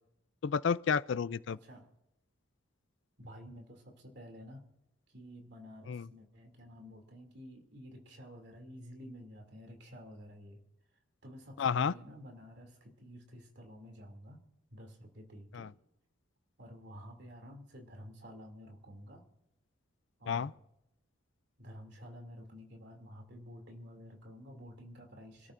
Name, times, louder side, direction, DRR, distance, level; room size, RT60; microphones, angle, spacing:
voice 1, 0.4-1.6 5.9-6.1 11.6-11.9 15.5-15.7 20.3-20.5, left 6 dB, 60° left, 0.4 m, -31 dB
voice 2, 1.5-1.9 3.2-4.6 5.1-10.6 11.2-14.4 14.7-15.7 16.6-19.2 20.2-20.5 21.6-25.5, equal, 55° right, 2.7 m, -51 dB
27.0 x 13.5 x 2.6 m
head